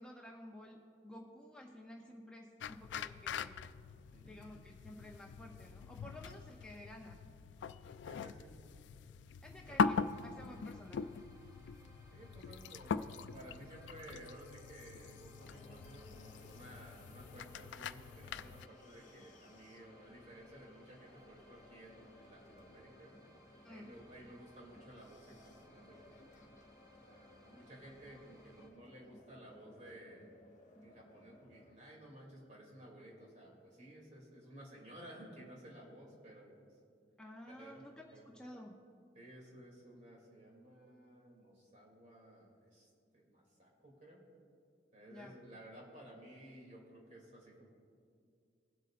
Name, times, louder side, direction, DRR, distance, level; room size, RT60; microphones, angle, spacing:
voice 1, 0.0-3.7 4.2-7.3 9.4-11.2 23.6-23.9 37.2-38.9 45.1-45.3, left 1 dB, 5° left, -1 dB, 0.6 m, -53 dB
sound 1, 2.6-18.7, left 5 dB, 85° left, 0.3 m, -42 dB
voice 2, 8.0-8.5 9.7-9.8 12.1-23.1 23.7-26.3 27.1-30.3 30.8-36.7 37.5-37.8 38.1-38.3 39.1-42.9 43.1-44.2 44.9-47.7, right 1 dB, 40° right, -3 dB, 2.7 m, -55 dB
sound 2, 9.6-28.7, left 1 dB, 20° right, 1.8 m, -64 dB
sound 3, 15.4-31.8, left 1 dB, 45° left, 1.2 m, -61 dB
20.5 x 8.0 x 2.5 m, 2.4 s
head